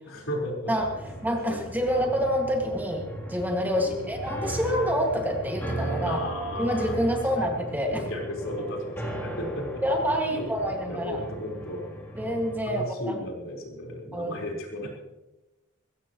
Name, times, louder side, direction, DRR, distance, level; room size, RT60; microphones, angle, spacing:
voice 1, 0.1-0.7 1.5-1.6 1.9-2.0 3.7-4.2 6.0-7.0 7.3-7.5 7.9-9.8 10.3-10.5 10.9-11.8 12.7-14.9, left 1 dB, 70° left, -1 dB, 4.4 m, -34 dB
sound 1, 0.8-12.6, right 1 dB, 10° left, 3.2 m, -37 dB
voice 2, 1.2-3.0 3.3-6.2 6.6-8.0 9.8-11.2 12.2-13.2 14.1-14.4, equal, 10° right, 1 dB, 2.0 m, -27 dB
22.0 x 16.5 x 3.1 m, 1.0 s
head